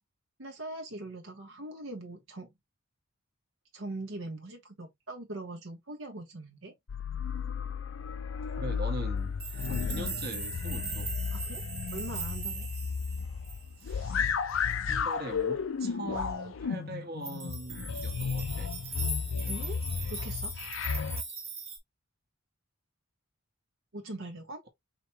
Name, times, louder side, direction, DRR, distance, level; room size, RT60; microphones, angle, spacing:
voice 1, 0.4-2.5 3.7-6.7 11.3-11.6 11.9-12.7 19.5-19.8 20.1-20.6 23.9-24.6, right 2 dB, 70° right, 1.0 m, -41 dB
sound 1, 6.9-21.2, left 6 dB, 65° left, 0.5 m, -33 dB
voice 2, 8.6-11.1 13.8-14.3 14.8-18.7, right 1 dB, 50° right, 1.2 m, -41 dB
sound 2, 9.4-13.9 17.2-21.8, right 3 dB, 30° right, 1.0 m, -40 dB
4.9 x 3.0 x 2.8 m
head